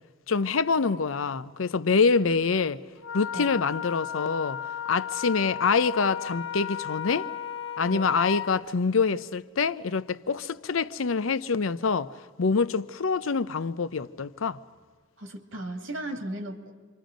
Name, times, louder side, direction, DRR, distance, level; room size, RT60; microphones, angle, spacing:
voice 1, 0.3-2.8 3.1-4.6 4.9-7.3 7.8-12.1 12.4-14.6, left 5 dB, 90° left, 0.6 m, -25 dB
Wind instrument woodwind instrument, 3.0-8.5, left 9 dB, 70° left, 1.4 m, -34 dB
voice 2, 15.2-16.7, right 1 dB, 75° right, 2.2 m, -36 dB
28.5 x 25.0 x 5.1 m
head